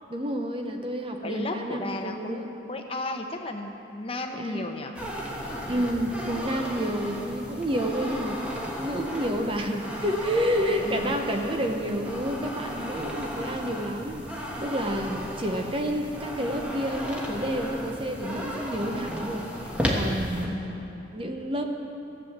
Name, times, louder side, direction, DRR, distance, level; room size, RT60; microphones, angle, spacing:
voice 1, 0.1-2.5 4.3-4.7 5.7-19.5 19.9-20.7 21.1-21.7, equal, 25° right, 3 dB, 0.8 m, -29 dB
voice 2, 1.2-4.9 10.8-11.2 20.4-21.2, left 2 dB, 30° left, 4 dB, 0.9 m, -34 dB
sound 1, 4.9-20.5, equal, 5° right, 1.2 m, -34 dB
14.5 x 8.3 x 7.3 m, 2.8 s
head